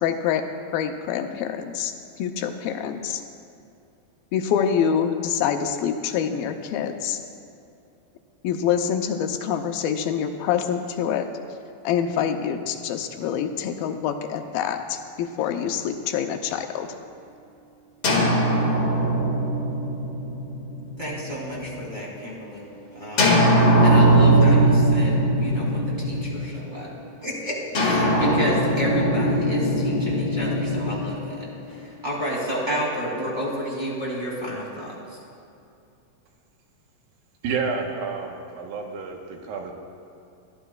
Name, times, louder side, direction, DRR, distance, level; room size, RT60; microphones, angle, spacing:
voice 1, 0.0-0.5 0.7-1.9 2.2-3.2 4.3-7.2 8.4-11.3 11.8-16.9, left 8 dB, 80° left, 6 dB, 2.5 m, -26 dB
sound 1, 18.0-21.8 23.2-26.7 27.7-31.9, right 1 dB, 40° left, 2.6 m, -20 dB
voice 2, 21.0-22.6 22.9-23.4 23.8-26.9 27.2-31.4 32.0-34.9, equal, 15° right, -6 dB, 2.9 m, -31 dB
voice 3, 37.4-39.7, right 5 dB, 75° right, 2 dB, 2.8 m, -30 dB
22.0 x 14.0 x 2.4 m, 2.6 s
omnidirectional pair, 4.4 m